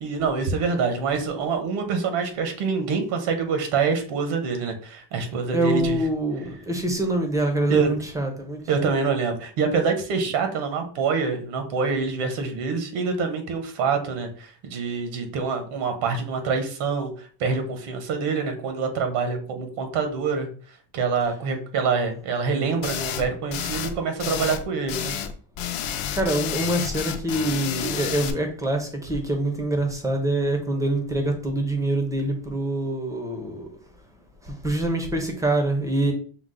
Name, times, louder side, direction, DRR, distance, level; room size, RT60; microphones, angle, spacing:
voice 1, 0.0-6.0 7.7-7.9 8.7-20.5 20.9-25.1, right 5 dB, 80° right, 1.1 m, -26 dB
voice 2, 5.5-8.9 25.9-33.7 34.4-36.1, right 1 dB, 5° right, 0.4 m, -25 dB
sound 1, 22.8-23.2 23.5-23.9 24.2-24.6 24.9-25.3 25.6-28.3, left 9 dB, 70° left, 0.7 m, -30 dB
6.1 x 2.0 x 3.7 m
cardioid pair, 175°, 49 cm